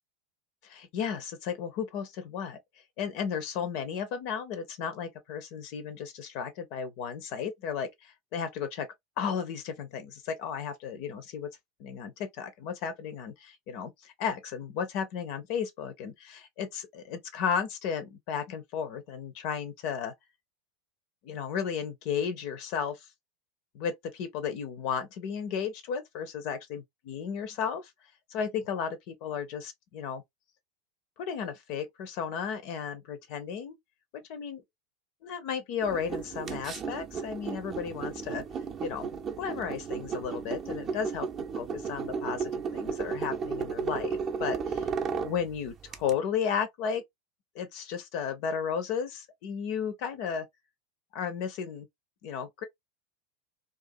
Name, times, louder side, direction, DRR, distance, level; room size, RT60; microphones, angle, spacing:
voice 1, 0.6-2.6 3.0-8.9 9.2-11.5 11.8-20.1 21.2-23.1 23.7-27.9 28.3-30.2 31.2-33.8 34.1-34.6 35.2-38.4 38.8-39.1 39.4-41.3 41.6-47.0 47.5-50.4 51.1-51.9 52.2-52.6, left 7 dB, 50° left, 0.4 m, -34 dB
sound 1, 35.8-46.1, right 5 dB, 35° right, 0.5 m, -34 dB
2.4 x 2.3 x 2.5 m
figure-of-eight pair, 80°, 0 cm